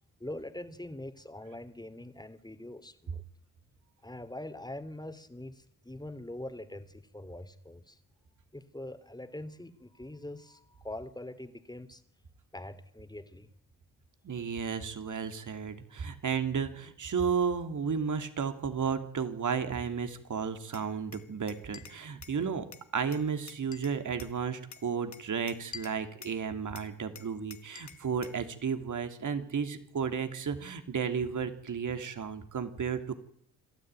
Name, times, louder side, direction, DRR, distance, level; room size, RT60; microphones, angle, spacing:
voice 1, 0.2-3.2 4.0-8.0 8.5-12.0 12.5-13.5, left 1 dB, 10° left, 10 dB, 3.0 m, -43 dB
voice 2, 14.2-22.7 22.9-33.1, right 6 dB, 50° right, 8 dB, 2.9 m, -33 dB
Glass, 20.7-22.4 22.7-24.4 24.7-26.4 26.8-28.4, left 6 dB, 50° left, 2.0 m, -49 dB
26.5 x 12.5 x 9.1 m, 0.72 s
supercardioid pair, 50°, 37 cm